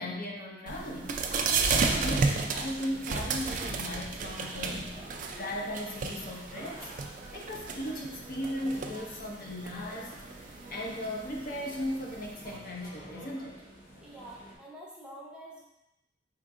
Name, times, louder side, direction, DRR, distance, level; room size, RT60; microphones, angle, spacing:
voice 1, 0.0-5.0 5.4-6.9 7.3-13.6, left 1 dB, 50° left, -1 dB, 0.7 m, -37 dB
sound 1, 0.7-14.5, right 1 dB, 85° left, 1.3 m, -49 dB
sound 2, 0.7-12.5, right 4 dB, 45° right, 0.3 m, -33 dB
voice 2, 14.0-15.6, right 1 dB, 5° right, -4 dB, 0.6 m, -47 dB
4.4 x 3.5 x 2.5 m, 0.91 s
head